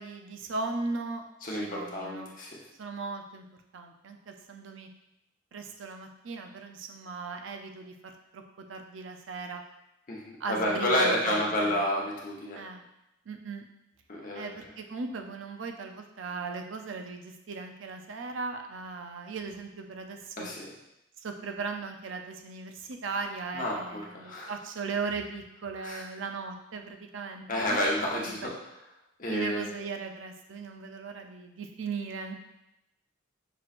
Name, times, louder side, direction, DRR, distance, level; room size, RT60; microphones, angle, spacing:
voice 1, 0.0-1.2 1.6-2.3 2.8-3.4 3.7-4.9 5.5-8.4 8.7-9.6 10.4-11.8 12.5-12.8 13.3-13.6 14.3-20.5 21.2-28.5 29.3-32.3, right 4 dB, 90° right, 5 dB, 0.5 m, -37 dB
voice 2, 1.4-2.6 10.1-12.6 14.1-14.6 20.4-20.7 23.5-24.5 25.8-26.0 27.5-28.5 29.2-29.6, left 1 dB, 45° left, -3 dB, 1.0 m, -30 dB
5.9 x 3.0 x 2.5 m, 0.87 s
head